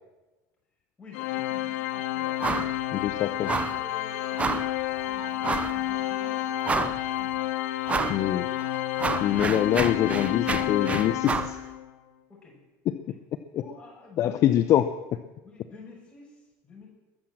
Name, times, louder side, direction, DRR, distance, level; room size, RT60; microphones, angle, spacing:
voice 1, 1.0-4.4 4.9-6.5 12.3-12.6 13.1-13.2 13.6-14.7 15.4-16.9, left 3 dB, 15° left, -3 dB, 6.3 m, -50 dB
Organ, 1.1-11.9, left 14 dB, 85° left, 1.1 m, -30 dB
sound 1, 2.4-2.8 3.0-3.1 3.5-3.8 4.4-4.7 5.4-5.8 6.2-6.3 6.6-7.2 7.9-8.2 8.6-11.6, right 4 dB, 20° right, 0.7 m, -29 dB
voice 2, 2.9-3.5 8.1-8.5 9.2-11.6 12.9-13.1 13.5-13.6 14.2-14.8, left 11 dB, 45° left, 10 dB, 0.7 m, -24 dB
Speech, 3.9-7.4 8.4-8.5 8.9-9.0 9.2-9.3, right 4 dB, 50° right, 4.1 m, -49 dB
22.0 x 7.3 x 7.7 m, 1.1 s
cardioid pair, 140°, 7 cm